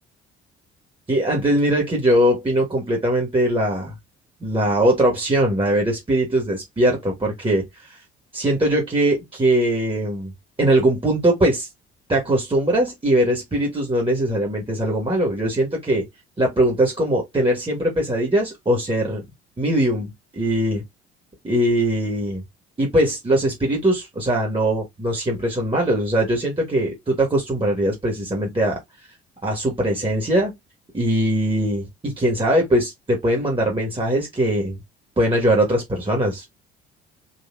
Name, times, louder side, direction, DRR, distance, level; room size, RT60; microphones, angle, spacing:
voice 1, 1.1-3.9 4.4-8.0 8.3-10.3 10.6-11.7 12.1-16.1 16.4-19.2 19.6-20.8 21.4-22.4 22.8-28.8 29.4-30.5 30.9-34.8 35.2-36.5, right 1 dB, 15° right, 1.5 m, -21 dB
4.1 x 2.8 x 2.5 m
figure-of-eight pair, 50°, 31 cm